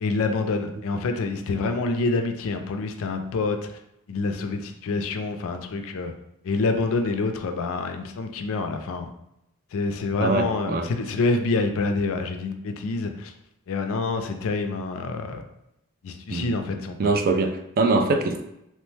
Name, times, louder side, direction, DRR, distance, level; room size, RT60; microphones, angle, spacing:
voice 1, 0.0-3.6 4.1-6.1 6.4-9.1 9.7-13.3 13.7-15.4 16.0-17.0, left 3 dB, 65° left, 6 dB, 0.4 m, -27 dB
voice 2, 10.2-10.9 16.3-16.6 17.0-18.4, right 3 dB, 40° right, 6 dB, 0.3 m, -23 dB
3.0 x 2.1 x 3.2 m, 0.82 s
head